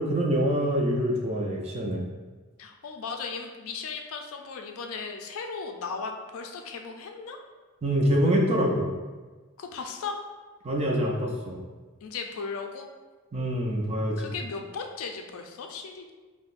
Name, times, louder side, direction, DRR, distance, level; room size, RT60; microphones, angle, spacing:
voice 1, 0.0-2.0 7.8-8.9 10.6-11.6 13.3-14.2, equal, 30° right, -1 dB, 0.4 m, -25 dB
voice 2, 2.6-7.4 9.6-10.1 12.0-12.9 14.2-16.1, left 5 dB, 70° left, 4 dB, 0.4 m, -36 dB
5.4 x 2.1 x 2.5 m, 1.3 s
head